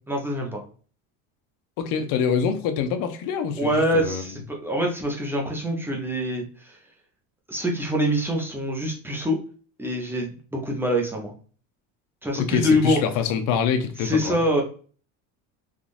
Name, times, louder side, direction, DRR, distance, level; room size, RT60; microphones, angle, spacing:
voice 1, 0.1-0.6 3.6-6.8 7.5-9.4 9.8-11.3 12.2-13.0 14.0-14.6, equal, 5° right, 0.7 m, -25 dB
voice 2, 1.8-4.2 12.4-14.4, left 7 dB, 55° left, 0.7 m, -25 dB
3.6 x 2.4 x 2.5 m
supercardioid pair, 130°, 39 cm